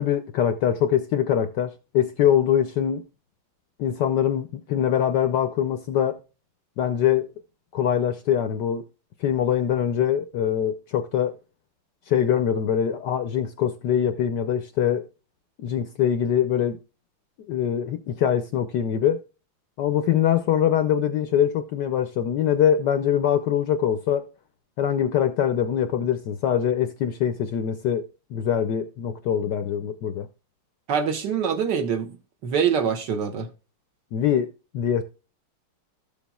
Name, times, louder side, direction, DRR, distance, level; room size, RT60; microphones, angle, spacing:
voice 1, 0.0-3.0 3.8-6.2 6.8-7.3 7.7-8.8 9.2-11.3 12.1-15.0 15.6-16.8 17.5-19.2 19.8-24.2 24.8-28.0 28.3-30.3 34.1-34.5 34.7-35.0, left 9 dB, 70° left, 1.0 m, -23 dB
voice 2, 30.9-32.2 32.4-33.5, right 7 dB, 60° right, 1.4 m, -24 dB
13.0 x 7.1 x 2.3 m
omnidirectional pair, 2.4 m